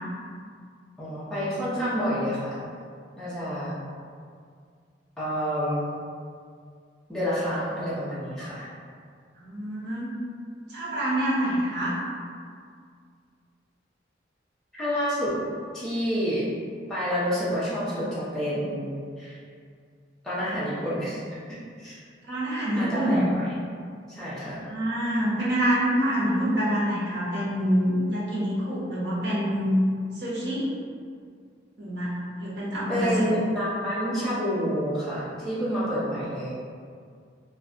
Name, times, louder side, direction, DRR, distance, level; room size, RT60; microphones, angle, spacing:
voice 1, 1.0-2.6 3.2-3.8 5.2-5.8 7.1-8.7 14.7-15.4 15.7-16.5 16.9-18.9 19.2-19.4 20.2-21.2 21.8-22.0 22.7-23.5 24.1-24.6 32.9-36.5, equal, ahead, -12 dB, 0.7 m, -28 dB
voice 2, 9.4-10.1 10.7-12.0 22.3-23.2 24.6-29.7 30.2-30.7 31.8-33.3, equal, 60° right, -8 dB, 0.9 m, -26 dB
2.3 x 2.2 x 3.7 m, 2.1 s
head